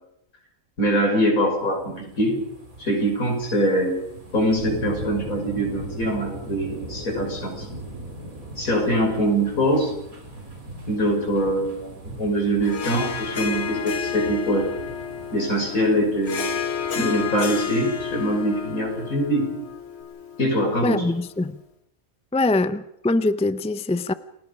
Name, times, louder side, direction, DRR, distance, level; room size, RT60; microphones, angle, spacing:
voice 1, 0.8-2.4 2.8-4.0 4.3-7.7 8.6-9.9 10.9-14.7 15.3-16.6 16.9-19.5 20.4-21.1, equal, 75° left, 5.8 m, -23 dB
sound 1, 1.4-19.6 20.0-20.1, right 1 dB, 75° right, 4.4 m, -39 dB
Harp, 12.6-21.3, left 6 dB, 50° left, 1.6 m, -31 dB
voice 2, 20.8-21.6 22.3-24.1, left 2 dB, 10° left, 0.3 m, -23 dB
29.0 x 19.5 x 5.2 m
omnidirectional pair, 1.5 m